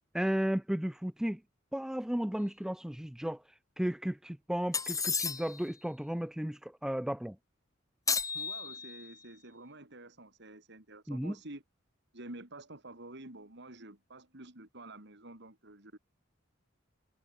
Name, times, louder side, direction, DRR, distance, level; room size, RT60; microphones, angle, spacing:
voice 1, 0.1-1.4 1.7-3.4 3.8-7.4 11.1-11.3, equal, 5° right, 0.3 m, -34 dB
sound 1, 4.7-5.7 8.1-9.2, left 5 dB, 15° left, 1.5 m, -33 dB
voice 2, 8.3-11.6 12.1-16.0, right 2 dB, 60° right, 4.3 m, -49 dB
head